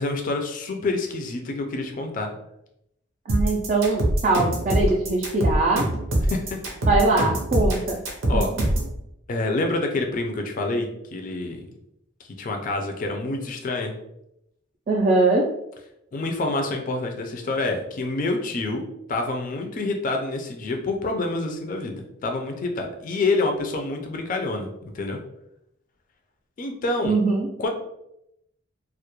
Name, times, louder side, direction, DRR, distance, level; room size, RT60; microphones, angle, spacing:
voice 1, 0.0-2.3 6.2-6.6 8.3-8.5 9.3-11.6 12.4-13.9 16.1-18.8 19.1-25.2 26.6-27.2 27.6-27.7, left 2 dB, 45° left, 4 dB, 0.3 m, -27 dB
voice 2, 3.3-5.9 6.9-8.0 8.3-8.4 14.9-15.5 27.0-27.5, right 2 dB, 40° right, -1 dB, 0.3 m, -21 dB
sound 1, 3.3-8.9, right 1 dB, 75° right, 0.6 m, -23 dB
2.2 x 2.0 x 2.9 m, 0.80 s
head